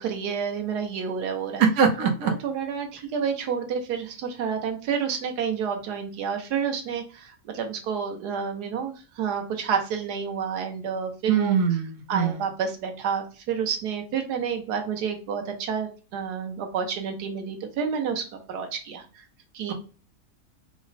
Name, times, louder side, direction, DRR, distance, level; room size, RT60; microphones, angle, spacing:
voice 1, 0.0-1.6 2.4-11.6 12.1-19.2 19.5-19.7, right 7 dB, 85° right, 4 dB, 1.4 m, -29 dB
voice 2, 1.6-2.3 11.3-12.4, right 6 dB, 65° right, 4 dB, 1.1 m, -22 dB
4.9 x 2.1 x 3.9 m, 0.35 s
omnidirectional pair, 1.7 m